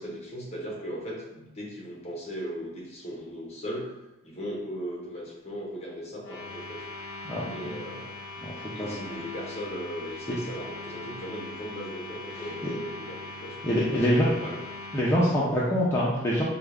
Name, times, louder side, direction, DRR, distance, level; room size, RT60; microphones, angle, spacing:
voice 1, 0.0-4.0 4.2-6.8 7.5-8.2 8.7-14.6 15.4-15.8, equal, 30° left, -2 dB, 1.0 m, -38 dB
sound 1, 6.2-15.0, left 2 dB, 90° left, 0.5 m, -41 dB
voice 2, 7.2-7.7 8.4-8.5 8.8-9.1 10.3-10.4 12.4-12.7 13.6-14.3 14.9-16.4, equal, 15° left, -7 dB, 0.5 m, -25 dB
4.9 x 2.4 x 3.4 m, 0.96 s
head